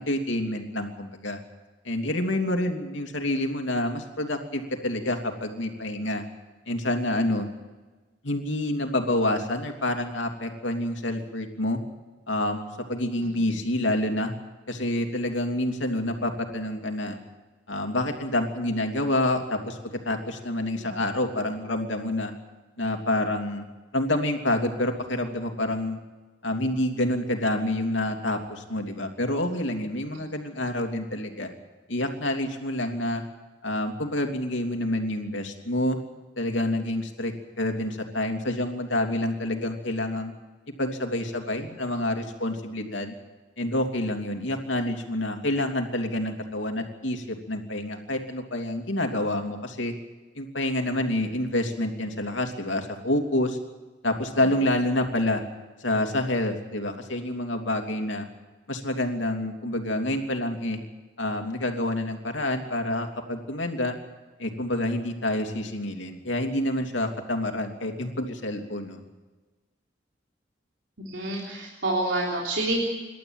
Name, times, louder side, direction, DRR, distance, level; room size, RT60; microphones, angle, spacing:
voice 1, 0.0-1.4 1.8-6.2 6.7-7.5 8.2-11.8 12.3-14.3 14.7-17.2 17.7-19.8 20.0-22.3 22.8-23.6 23.9-26.0 26.4-31.5 31.9-33.2 33.6-36.0 36.4-40.3 40.8-43.1 43.6-49.9 50.3-53.6 54.0-55.4 55.8-58.3 58.7-60.8 61.2-63.9 64.4-69.0, left 1 dB, 90° left, 4 dB, 3.0 m, -28 dB
voice 2, 71.0-72.8, right 2 dB, 80° right, -2 dB, 3.6 m, -28 dB
27.5 x 12.5 x 9.0 m, 1.2 s
head